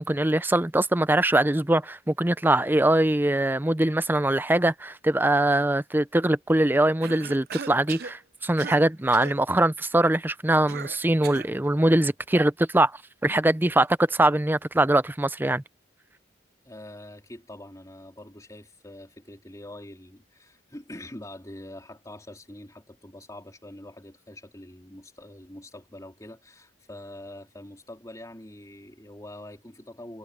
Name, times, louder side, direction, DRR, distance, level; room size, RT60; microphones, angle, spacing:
voice 1, 0.0-12.9 13.2-15.6, right 1 dB, 10° right, 0.5 m, -22 dB
Cough, 7.0-8.2 8.6-8.8 9.1-9.4 10.7-11.5, right 7 dB, 55° right, 0.5 m, -38 dB
voice 2, 16.6-30.2, left 1 dB, 20° left, 3.7 m, -44 dB
head